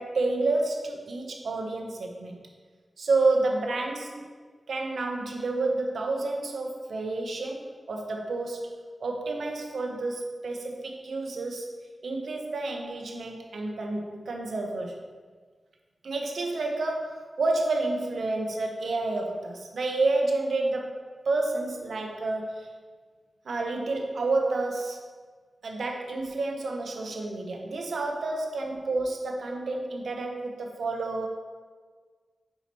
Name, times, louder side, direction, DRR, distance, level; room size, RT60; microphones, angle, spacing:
voice 1, 0.0-2.4 3.0-4.3 4.7-8.7 9.0-11.7 12.0-15.0 16.0-21.0 21.3-22.7 23.4-25.0 25.6-31.3, right 2 dB, 75° right, 2 dB, 0.7 m, -29 dB
6.9 x 4.8 x 3.0 m, 1.5 s
wide cardioid pair, 145°, 0 cm